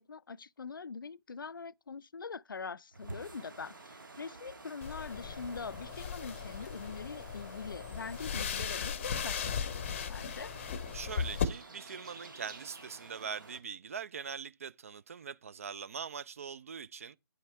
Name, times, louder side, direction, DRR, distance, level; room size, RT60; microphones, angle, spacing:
voice 1, 0.0-10.5, left 5 dB, 70° left, 0.4 m, -43 dB
sound 1, 2.9-13.6, right 3 dB, 65° right, 1.4 m, -51 dB
sound 2, 4.8-11.4, left 7 dB, 30° left, 0.7 m, -37 dB
voice 2, 10.9-17.2, right 6 dB, 40° right, 0.4 m, -42 dB
9.1 x 5.7 x 4.3 m
figure-of-eight pair, 145°, 12 cm